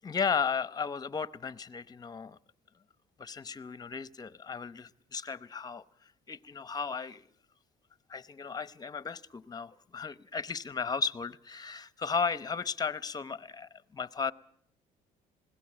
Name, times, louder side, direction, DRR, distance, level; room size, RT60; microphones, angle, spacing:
voice 1, 0.0-2.4 3.2-5.8 6.3-7.3 8.1-14.3, left 5 dB, 25° left, 0.8 m, -35 dB
21.0 x 17.0 x 8.7 m
cardioid pair, 110°, 17 cm